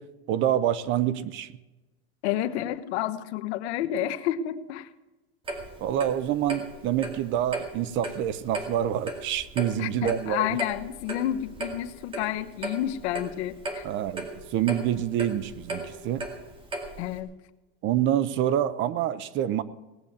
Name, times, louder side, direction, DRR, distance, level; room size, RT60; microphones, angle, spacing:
voice 1, 0.0-1.5 5.8-10.5 13.8-16.2 17.8-19.6, right 11 dB, 35° right, 0.7 m, -27 dB
voice 2, 2.2-4.9 9.8-13.8 17.0-17.3, left 12 dB, 80° left, 1.1 m, -30 dB
Clock, 5.5-17.2, right 2 dB, 15° right, 2.2 m, -37 dB
18.0 x 7.9 x 8.7 m
supercardioid pair, 160°, 33 cm